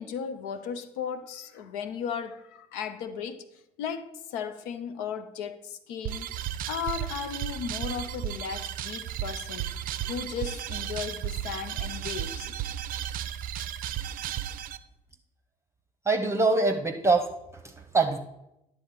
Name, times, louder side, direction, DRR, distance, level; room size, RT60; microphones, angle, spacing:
voice 1, 0.0-3.5 3.8-6.3 6.7-9.7 10.1-12.6, left 7 dB, 65° left, 0.7 m, -36 dB
sound 1, 6.0-14.8, right 11 dB, 45° right, 0.5 m, -34 dB
voice 2, 16.0-18.2, right 3 dB, 15° right, 0.9 m, -25 dB
10.5 x 3.8 x 7.2 m
figure-of-eight pair, 50°, 20 cm